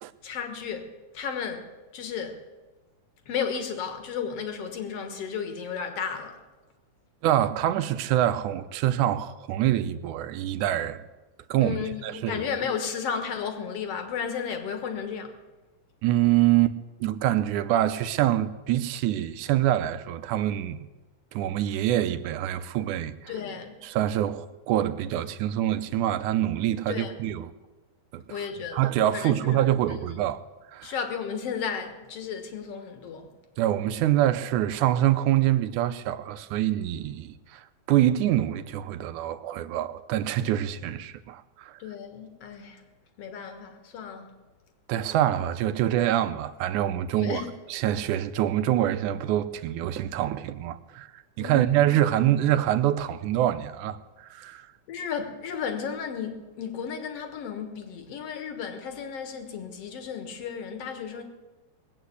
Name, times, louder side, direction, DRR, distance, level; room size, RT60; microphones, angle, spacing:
voice 1, 0.2-2.4 3.3-6.4 11.6-15.4 23.3-23.8 26.9-27.1 28.3-29.6 30.8-33.3 41.8-42.8 43.2-44.3 47.2-47.5 51.4-51.9 54.9-61.2, left 7 dB, 55° left, 2.3 m, -34 dB
voice 2, 7.2-11.0 11.5-11.8 12.0-12.4 16.0-20.9 21.3-23.4 23.8-27.5 28.1-28.5 28.7-30.4 30.7-30.9 33.6-37.6 37.9-41.7 44.9-47.4 47.7-54.7, right 12 dB, 80° right, 2.1 m, -25 dB
19.5 x 8.2 x 8.3 m
omnidirectional pair, 3.6 m